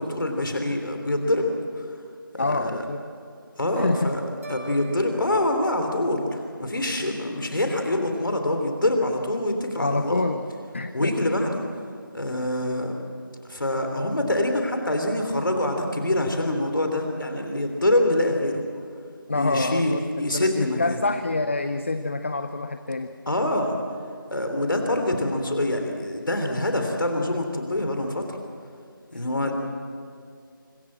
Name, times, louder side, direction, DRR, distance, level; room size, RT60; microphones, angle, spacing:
voice 1, 0.0-1.9 2.3-2.8 3.6-4.2 4.5-10.2 10.9-11.5 12.1-12.9 13.5-18.6 19.3-19.9 20.2-21.0 23.3-23.7 24.3-28.4 29.1-29.5, left 1 dB, 65° left, 4 dB, 3.3 m, -25 dB
voice 2, 2.4-3.0 3.8-4.1 7.0-7.1 9.8-10.4 10.7-11.1 19.3-20.0 20.3-23.1, left 3 dB, 35° left, 10 dB, 0.7 m, -26 dB
sound 1, 4.4-6.7, right 1 dB, 40° right, 4.8 m, -43 dB
25.5 x 19.0 x 7.7 m, 2.3 s
figure-of-eight pair, 170°, 12 cm